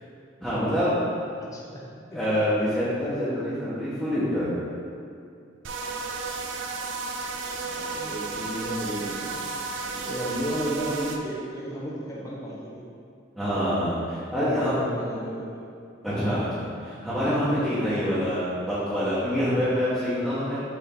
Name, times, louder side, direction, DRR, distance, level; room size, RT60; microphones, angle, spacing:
voice 1, 0.4-0.9 2.1-4.5 9.8-10.1 13.3-14.7 16.0-20.6, equal, ahead, -14 dB, 1.2 m, -26 dB
voice 2, 1.4-2.2 7.6-9.6 10.0-12.9 14.3-15.5, equal, 20° left, -5 dB, 0.7 m, -34 dB
sound 1, 5.6-11.2, right 4 dB, 75° right, 0.5 m, -33 dB
7.0 x 3.6 x 3.8 m, 2.5 s
head